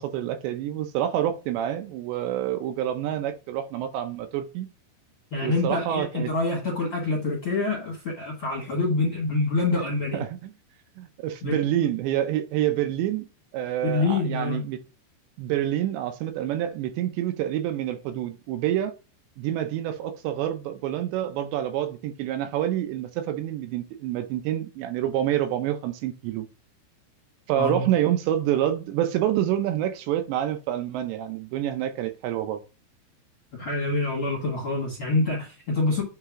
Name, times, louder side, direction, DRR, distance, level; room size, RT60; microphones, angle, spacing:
voice 1, 0.0-4.7 5.4-6.3 10.1-10.5 11.0-13.3 13.5-14.8 15.4-18.9 19.4-26.5 27.5-32.6, right 11 dB, 80° right, 2.8 m, -27 dB
voice 2, 5.3-10.2 11.4-11.6 13.8-14.6 27.6-27.9 33.5-36.0, left 3 dB, 50° left, 1.7 m, -26 dB
8.9 x 3.9 x 3.6 m
omnidirectional pair, 5.3 m